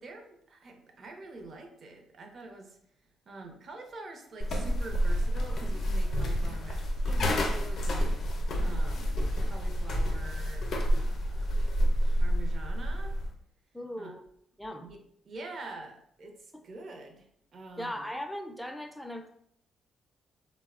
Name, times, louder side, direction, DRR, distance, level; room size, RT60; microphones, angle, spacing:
voice 1, 0.0-2.8 3.3-10.7 10.9-11.5 12.0-13.2 14.0-14.1 14.8-15.0 15.2-18.1, right 2 dB, 50° right, 2 dB, 0.6 m, -46 dB
sound 1, 4.4-13.3, equal, 60° left, 0.5 m, -28 dB
voice 2, 13.7-14.2 14.6-14.9 17.8-19.3, equal, ahead, 4 dB, 0.4 m, -38 dB
4.0 x 2.0 x 2.4 m, 0.69 s
cardioid pair, 90°, 0 cm